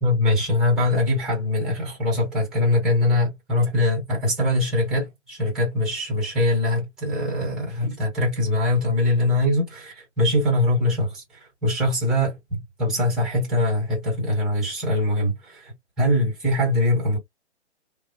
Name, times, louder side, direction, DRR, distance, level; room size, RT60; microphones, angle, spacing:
voice 1, 0.0-17.2, left 1 dB, ahead, 0.9 m, -22 dB
2.9 x 2.1 x 2.4 m
figure-of-eight pair, 145°, 35 cm